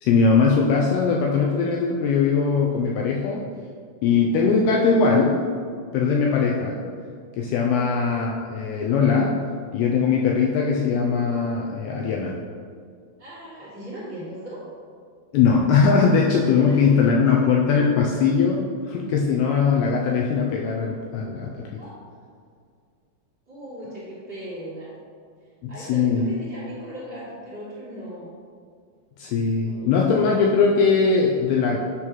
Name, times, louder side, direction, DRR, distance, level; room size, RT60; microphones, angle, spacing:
voice 1, 0.0-3.4 4.0-5.4 5.9-6.8 7.3-9.4 9.7-12.4 15.3-21.6 25.6-26.2 29.2-31.8, left 5 dB, 90° left, -1 dB, 2.3 m, -20 dB
voice 2, 13.2-14.6 16.6-17.5 21.7-22.0 23.5-24.9 25.7-28.4 29.6-30.3, equal, 45° right, -11 dB, 1.6 m, -38 dB
8.8 x 3.2 x 6.0 m, 2.2 s
omnidirectional pair, 5.1 m